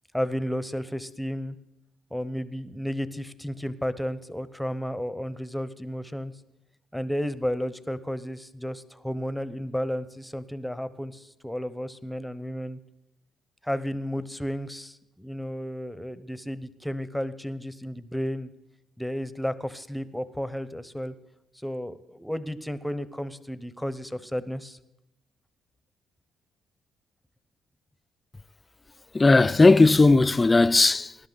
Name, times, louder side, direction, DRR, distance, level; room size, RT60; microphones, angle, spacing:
voice 1, 0.1-1.6 2.1-6.3 6.9-12.8 13.6-18.5 19.0-21.1 21.5-24.8, equal, ahead, 0.9 m, -32 dB
voice 2, 29.1-31.2, left 3 dB, 20° left, 0.4 m, -17 dB
19.5 x 11.5 x 4.0 m
cardioid pair, 90°, 0 cm